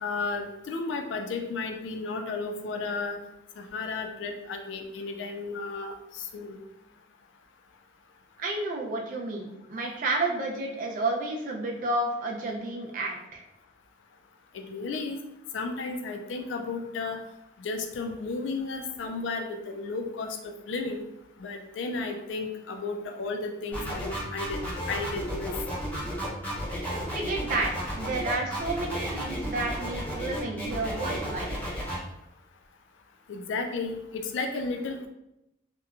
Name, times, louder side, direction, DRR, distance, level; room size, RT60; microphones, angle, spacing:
voice 1, 0.0-3.2 3.6-6.6 14.5-15.2 15.5-17.2 17.6-21.0 21.4-24.6 24.9-25.5 33.3-35.1, left 3 dB, 75° left, 5 dB, 0.3 m, -33 dB
voice 2, 8.4-13.4 27.1-31.6, right 2 dB, 45° right, 1 dB, 0.4 m, -31 dB
sound 1, 23.7-32.0, equal, 10° left, 0.6 m, -33 dB
2.8 x 2.2 x 2.3 m, 0.87 s
head